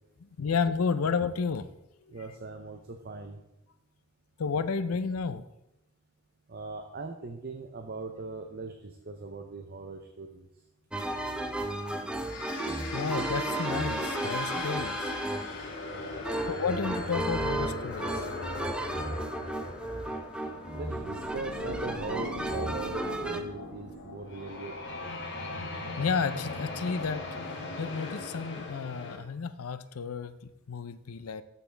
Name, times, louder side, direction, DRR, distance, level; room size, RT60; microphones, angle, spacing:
voice 1, 0.2-1.7 2.0-2.2 4.4-5.4 12.9-15.1 16.5-18.3 26.0-27.2 27.8-31.4, left 5 dB, 85° left, 13 dB, 0.5 m, -31 dB
voice 2, 2.1-3.4 6.5-8.7 9.1-10.5 15.8-16.1 20.7-25.1, right 3 dB, 45° right, 5 dB, 0.6 m, -40 dB
sound 1, 10.9-23.4, right 2 dB, 5° right, 0.5 m, -34 dB
sound 2, 12.2-29.2, left 2 dB, 55° left, 1.5 m, -38 dB
13.5 x 5.7 x 3.4 m, 0.92 s
head